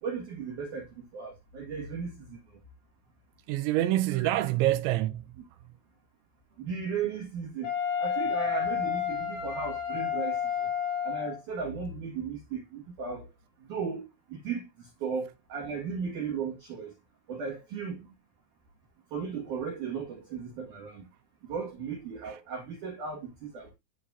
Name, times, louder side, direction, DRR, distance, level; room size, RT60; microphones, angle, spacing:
voice 1, 0.0-2.4 6.6-7.7 8.0-10.7 11.0-13.3 13.7-16.9 17.3-18.1 19.1-21.0 21.5-23.7, right 5 dB, 60° right, 2.3 m, -36 dB
voice 2, 3.5-5.4 5.6-5.7 22.2-22.4, right 15 dB, 80° right, 2.9 m, -27 dB
Wind instrument woodwind instrument, 7.6-11.4, left 8 dB, 85° left, 4.4 m, -30 dB
12.5 x 4.6 x 2.5 m
omnidirectional pair, 5.5 m